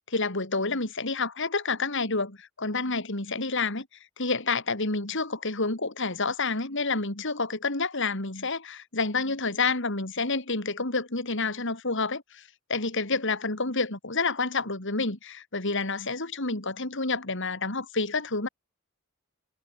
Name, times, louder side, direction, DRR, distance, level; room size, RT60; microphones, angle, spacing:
voice 1, 0.1-3.9 4.2-12.4 12.7-18.5, left 3 dB, 65° left, 4.1 m, -29 dB
head